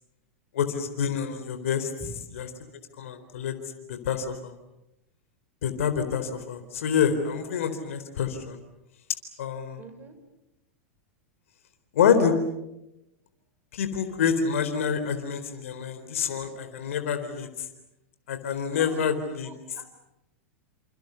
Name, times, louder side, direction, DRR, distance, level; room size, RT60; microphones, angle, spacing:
voice 1, 0.5-2.5 3.0-3.5 3.9-4.5 5.6-8.6 9.4-9.8 11.9-12.3 13.7-17.7 18.3-19.5, left 7 dB, 70° left, 8 dB, 4.1 m, -27 dB
voice 2, 9.8-10.2 18.5-19.0 19.4-19.9, right 4 dB, 25° right, 8 dB, 6.4 m, -45 dB
28.5 x 28.0 x 7.0 m, 0.90 s
hypercardioid pair, 100°, 7 cm